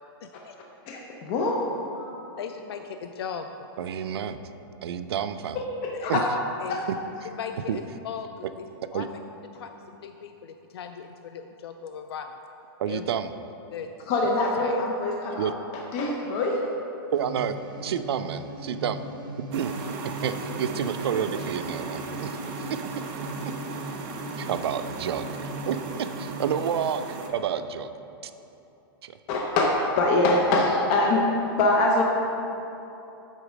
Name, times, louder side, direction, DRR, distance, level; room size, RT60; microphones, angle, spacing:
voice 1, 0.2-0.6 2.4-3.5 6.0-6.1 6.6-6.8 7.3-8.7 8.9-9.1 9.6-12.3 12.9-13.0 13.7-13.9 14.6-14.8, left 7 dB, 90° left, 7 dB, 0.4 m, -38 dB
voice 2, 0.9-1.6 1.9-2.4 5.5-6.3 6.7-6.8 14.1-15.5 15.7-16.6 29.3-31.3 31.6-32.0, left 2 dB, 35° left, -1 dB, 0.6 m, -24 dB
voice 3, 3.8-4.4 4.8-5.6 6.1-6.2 6.9-7.0 7.7-7.8 8.9-9.1 12.8-13.3 15.4-15.5 17.1-19.0 19.5-19.7 20.2-22.4 22.7-23.0 23.5-23.6 24.3-27.9 28.2-28.3 29.0-29.1, right 8 dB, 85° right, 11 dB, 0.4 m, -29 dB
sound 1, 17.1-26.8, right 1 dB, 60° right, 0.9 m, -39 dB
sound 2, 19.5-27.3, right 4 dB, 30° right, 0.6 m, -37 dB
8.0 x 4.1 x 5.1 m, 3.0 s
supercardioid pair, 160°, 13 cm